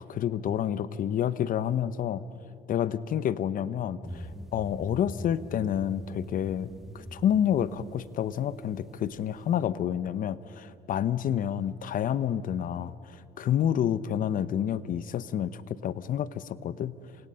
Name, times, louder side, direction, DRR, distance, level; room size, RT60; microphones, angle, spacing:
voice 1, 0.0-2.2 2.7-17.0, left 9 dB, 55° left, 16 dB, 0.8 m, -29 dB
sound 1, 4.0-9.5, equal, ahead, 1.3 m, -43 dB
29.5 x 26.0 x 5.6 m, 2.8 s
cardioid pair, 110°, 17 cm